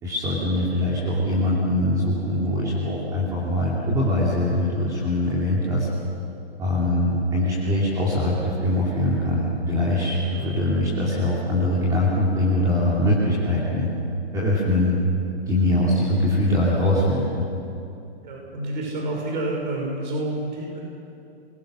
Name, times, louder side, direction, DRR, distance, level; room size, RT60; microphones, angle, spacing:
voice 1, 0.0-5.9 6.6-13.9 14.3-15.0 15.5-17.4, left 1 dB, 10° right, -6 dB, 2.8 m, -22 dB
voice 2, 10.2-10.6 18.2-20.8, right 1 dB, 45° right, -1 dB, 6.3 m, -29 dB
29.5 x 22.0 x 6.4 m, 2.7 s
hypercardioid pair, 165°, 33 cm